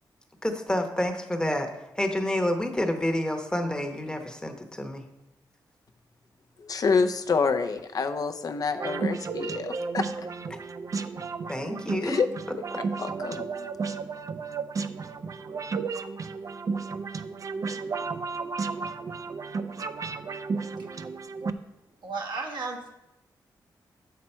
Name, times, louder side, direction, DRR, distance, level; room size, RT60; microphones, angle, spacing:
voice 1, 0.4-1.7 2.0-5.0 11.5-12.2, left 1 dB, 10° left, 5 dB, 0.9 m, -28 dB
voice 2, 6.6-10.3 12.0-12.3 13.0-13.7, left 5 dB, 55° left, 7 dB, 0.5 m, -27 dB
sound 1, 8.7-21.5, right 4 dB, 45° right, 0.4 m, -33 dB
voice 3, 22.0-22.9, right 4 dB, 75° right, 1 dB, 1.3 m, -33 dB
7.3 x 5.7 x 4.3 m, 0.90 s
cardioid pair, 85°, 8 cm